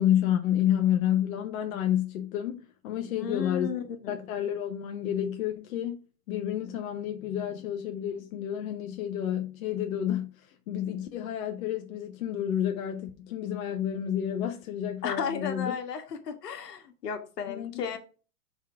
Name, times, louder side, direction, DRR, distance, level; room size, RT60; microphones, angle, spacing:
voice 1, 0.0-3.7 4.1-6.0 6.3-15.7 17.5-17.9, left 10 dB, 60° left, 1.0 m, -30 dB
voice 2, 3.1-4.2 15.0-18.0, left 6 dB, 80° left, 1.6 m, -34 dB
5.6 x 3.7 x 5.8 m
hypercardioid pair, 135°, 47 cm